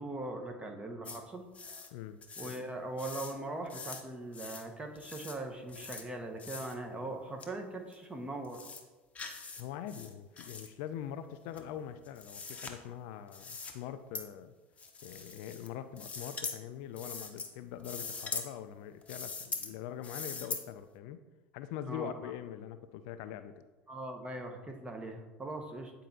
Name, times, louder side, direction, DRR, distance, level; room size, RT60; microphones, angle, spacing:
voice 1, 0.0-1.5 2.4-8.6 21.8-22.3 23.9-25.9, right 2 dB, 15° right, 3 dB, 1.0 m, -40 dB
sound 1, 1.1-1.2 1.5-1.9 2.2-2.6 3.0-3.3 3.7-4.0 4.3-4.7 5.0-5.4 5.7-6.0 6.4-6.8 7.4-7.5 7.9-8.0 8.4-8.8 9.2-9.6 9.9-10.7 11.5-12.7 13.3-13.7 14.2-14.3 14.8-15.7 16.0-16.6 17.0-17.5 17.8-18.5 19.0-19.7 20.0-20.6, left 4 dB, 20° left, 0.9 m, -42 dB
voice 2, 1.9-2.5 9.6-14.5 15.0-21.2 21.5-23.5, left 10 dB, 55° left, 11 dB, 0.3 m, -43 dB
9.0 x 4.5 x 2.7 m, 1.2 s
figure-of-eight pair, 75°, 6 cm